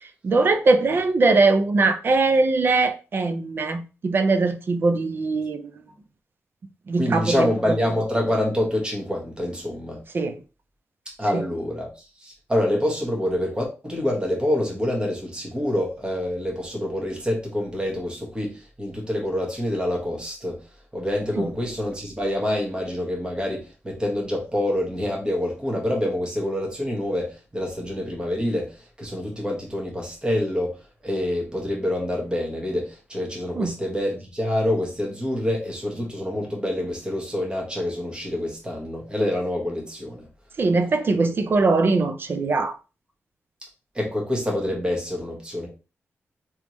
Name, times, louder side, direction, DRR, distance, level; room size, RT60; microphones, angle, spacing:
voice 1, 0.0-5.6 6.9-7.5 10.1-10.4 11.3-11.4 21.4-21.5 33.6-33.7 40.6-42.8, right 3 dB, 50° right, 0.4 m, -21 dB
voice 2, 7.0-10.0 11.2-20.6 20.9-30.8 31.0-40.3 43.9-45.7, left 1 dB, 20° right, 1.4 m, -26 dB
3.4 x 3.0 x 3.0 m
wide cardioid pair, 120°, 5 cm